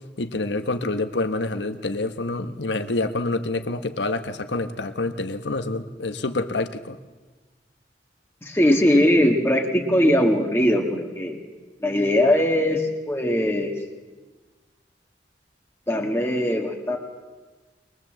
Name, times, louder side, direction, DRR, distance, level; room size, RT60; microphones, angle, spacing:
voice 1, 0.2-7.0, left 2 dB, 85° left, 9 dB, 1.2 m, -27 dB
voice 2, 8.4-11.4 11.8-13.7 15.9-17.0, left 1 dB, 15° left, 1 dB, 1.7 m, -20 dB
23.0 x 20.5 x 7.6 m, 1.3 s
head